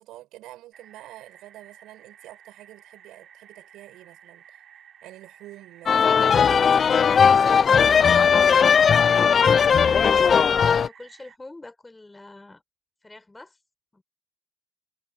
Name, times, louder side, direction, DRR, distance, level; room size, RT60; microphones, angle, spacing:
voice 1, 0.0-4.6 5.0-8.6 9.6-10.4, right 16 dB, 85° right, 7.7 m, -46 dB
sound 1, 0.7-11.4, right 9 dB, 60° right, 6.3 m, -52 dB
sound 2, 5.9-10.9, left 7 dB, 45° left, 0.5 m, -18 dB
voice 2, 10.1-12.6 13.0-13.6 13.9-14.0, left 2 dB, 15° left, 4.5 m, -45 dB
cardioid pair, 90°, 0 cm